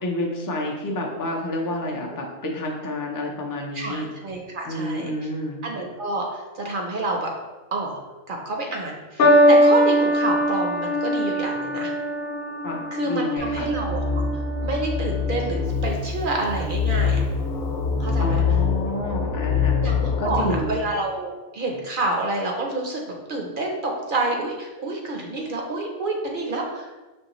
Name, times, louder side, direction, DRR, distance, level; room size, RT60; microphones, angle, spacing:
voice 1, 0.0-4.1 4.6-5.6 12.6-13.7 18.2-19.8 20.2-20.8, left 1 dB, 30° left, -1 dB, 0.4 m, -29 dB
voice 2, 3.7-5.3 5.6-7.3 7.7-8.0 8.3-11.9 12.9-14.0 14.6-17.2 18.0-18.4 19.8-23.0 23.3-26.9, right 2 dB, 55° right, 0 dB, 0.7 m, -28 dB
sound 1, 9.2-15.7 16.6-17.0, equal, 55° left, 0.7 m, -22 dB
sound 2, 13.4-20.6, left 5 dB, 85° left, 1.0 m, -25 dB
5.5 x 3.1 x 3.0 m, 1.2 s
omnidirectional pair, 1.3 m